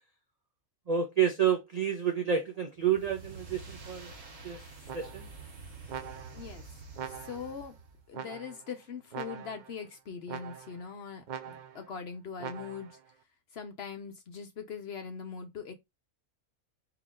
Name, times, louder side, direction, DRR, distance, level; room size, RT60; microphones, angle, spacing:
voice 1, 0.9-4.1 4.4-4.6 4.9-5.3, right 8 dB, 40° right, 0.6 m, -29 dB
sound 1, 2.8-8.1, right 3 dB, 70° right, 1.5 m, -48 dB
sound 2, 4.9-5.4 5.9-6.5 7.0-7.6 8.1-8.7 9.1-9.8 10.3-10.9 11.3-11.9 12.4-13.0, right 8 dB, 90° right, 0.4 m, -43 dB
voice 2, 6.3-6.6 7.0-7.8 8.1-13.0 13.5-15.7, left 6 dB, 60° left, 0.8 m, -41 dB
3.8 x 2.9 x 3.6 m
omnidirectional pair, 1.4 m